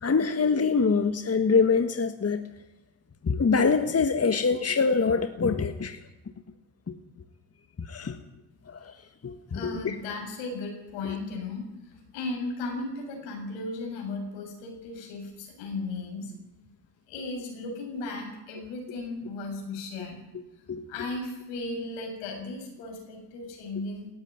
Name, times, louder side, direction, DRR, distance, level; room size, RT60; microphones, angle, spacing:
voice 1, 0.0-2.4 3.2-6.0 6.9-7.0 7.8-8.2 8.7-8.9 9.2-9.9 20.7-20.8, left 5 dB, 30° left, 8 dB, 1.7 m, -24 dB
voice 2, 9.5-16.3 17.1-20.3 20.9-24.1, left 3 dB, 80° left, 2 dB, 7.4 m, -36 dB
19.0 x 14.5 x 9.6 m, 0.93 s
hypercardioid pair, 50°, 49 cm